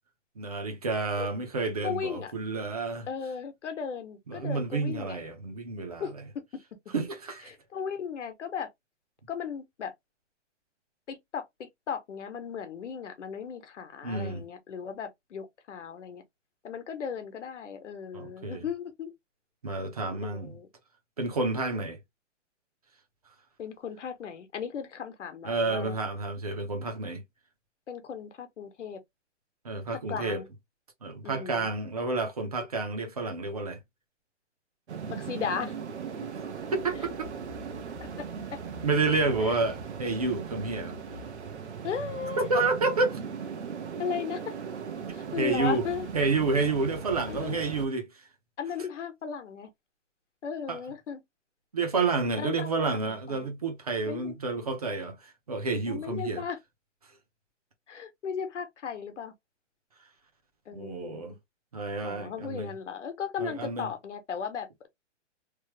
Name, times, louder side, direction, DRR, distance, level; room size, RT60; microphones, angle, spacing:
voice 1, 0.4-3.1 4.3-6.3 6.9-7.5 14.0-14.4 18.1-18.6 19.6-20.6 21.2-22.0 25.4-27.2 29.6-30.4 31.0-33.8 36.7-37.3 38.8-41.0 42.5-43.2 45.4-45.9 46.1-48.1 50.7-50.8 51.7-56.4 60.7-61.3 61.7-62.7 63.4-63.9, right 3 dB, 30° right, 0.6 m, -30 dB
voice 2, 1.8-2.3 3.1-5.2 6.0-6.1 7.7-8.7 9.3-9.9 11.1-16.2 16.6-19.1 20.2-20.7 23.6-26.0 27.9-29.0 30.1-30.5 31.2-31.7 35.1-35.7 38.0-38.3 38.5-38.6 39.4-39.6 41.8-42.5 44.0-44.5 45.1-46.1 47.3-47.6 48.6-49.7 50.4-51.2 52.4-53.5 54.0-54.3 55.9-56.6 57.9-59.3 60.7-61.2 62.0-64.9, left 7 dB, 70° left, 1.0 m, -36 dB
sound 1, 34.9-47.9, right 6 dB, 65° right, 0.9 m, -38 dB
3.1 x 2.0 x 3.1 m
hypercardioid pair, 180°, 37 cm